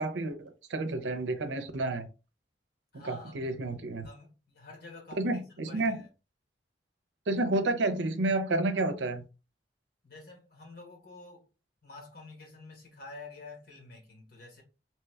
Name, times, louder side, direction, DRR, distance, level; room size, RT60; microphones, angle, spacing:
voice 1, 0.0-2.1 3.0-4.1 5.1-6.0 7.3-9.3, right 2 dB, 85° right, 0.5 m, -30 dB
voice 2, 2.9-3.3 4.0-6.1 10.0-11.5 11.8-14.6, left 3 dB, 60° left, 1.4 m, -49 dB
3.1 x 2.3 x 3.2 m
head